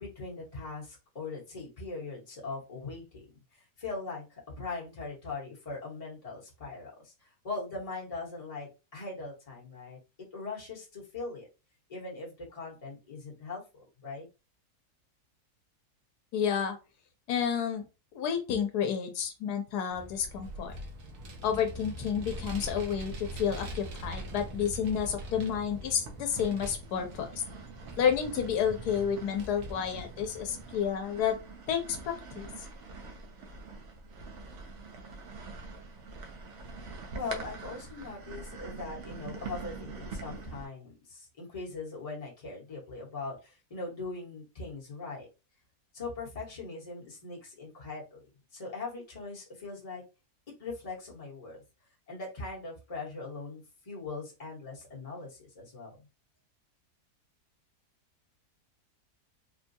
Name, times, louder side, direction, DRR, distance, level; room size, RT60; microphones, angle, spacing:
voice 1, 0.0-3.3 3.5-10.0 10.3-11.5 11.9-13.6 14.0-14.3 37.1-45.3 45.9-50.0 50.6-51.6 52.1-56.0, left 3 dB, 25° left, -4 dB, 1.1 m, -40 dB
voice 2, 16.3-16.8 17.3-17.8 18.1-20.7 21.4-27.3 28.0-31.3 31.7-32.5, left 8 dB, 85° left, 5 dB, 1.2 m, -30 dB
Vehicle, 19.9-30.8, right 1 dB, 80° right, 1.3 m, -43 dB
sound 1, 25.1-25.5 26.1-40.7, right 4 dB, 60° right, 0.9 m, -45 dB
3.8 x 2.2 x 2.6 m, 0.30 s
omnidirectional pair, 1.7 m